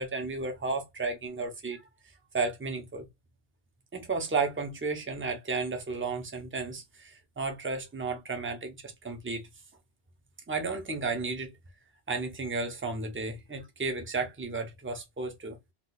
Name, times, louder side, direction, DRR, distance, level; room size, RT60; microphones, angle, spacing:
voice 1, 0.0-1.8 2.3-3.0 3.9-9.4 10.5-11.5 12.1-15.6, right 3 dB, 20° right, 0.3 m, -33 dB
2.3 x 2.2 x 3.9 m
omnidirectional pair, 1.2 m